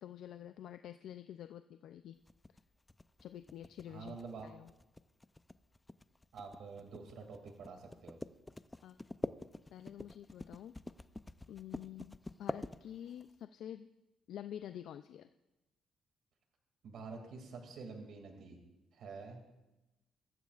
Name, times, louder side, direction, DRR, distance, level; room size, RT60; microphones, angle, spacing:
voice 1, 0.0-2.2 3.2-4.2 4.4-4.7 8.8-9.1 9.7-10.7 11.5-13.9 14.3-15.3, left 10 dB, 75° left, 9 dB, 0.4 m, -48 dB
sound 1, 2.3-13.3, left 2 dB, 15° left, 0.5 m, -46 dB
voice 2, 3.9-4.5 6.3-8.2 16.8-18.6 18.9-19.4, right 4 dB, 70° right, 3 dB, 2.4 m, -48 dB
24.0 x 14.5 x 2.5 m, 1.0 s
cardioid pair, 90°, 0 cm